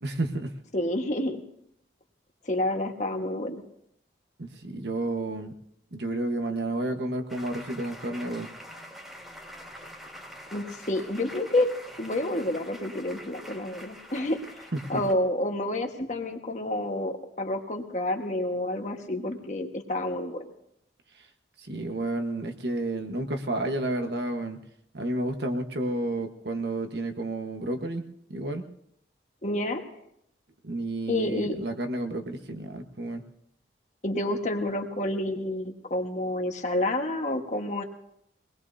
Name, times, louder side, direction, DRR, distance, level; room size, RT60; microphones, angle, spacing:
voice 1, 0.0-0.5 4.4-5.5 5.9-8.5 14.7-15.0 21.6-24.6 24.9-28.0 28.3-28.6 30.6-33.2, right 1 dB, 70° right, 5 dB, 1.3 m, -31 dB
voice 2, 0.7-1.4 2.5-3.6 10.5-11.7 12.0-20.5 29.4-29.8 31.1-31.6 34.0-37.8, left 1 dB, 40° left, 3 dB, 1.5 m, -29 dB
sound 1, 7.3-15.1, equal, ahead, 2.2 m, -45 dB
23.5 x 19.5 x 2.7 m, 0.74 s
head